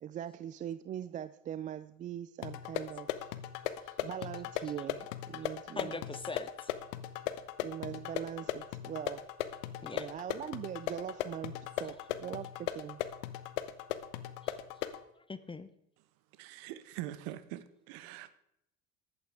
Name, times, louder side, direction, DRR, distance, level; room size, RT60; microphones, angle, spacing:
voice 1, 0.0-3.1 3.8-6.0 7.6-9.3 9.9-13.0, right 10 dB, 20° right, 15 dB, 0.3 m, -41 dB
sound 1, 2.4-15.0, left 12 dB, 65° left, 1.0 m, -38 dB
voice 2, 5.4-6.7 9.8-10.1 14.4-14.6 15.3-15.7, left 3 dB, 10° left, 13 dB, 0.8 m, -43 dB
voice 3, 16.4-18.3, right 14 dB, 55° right, 14 dB, 1.2 m, -43 dB
15.0 x 11.5 x 3.6 m, 0.79 s
hypercardioid pair, 75°, 41 cm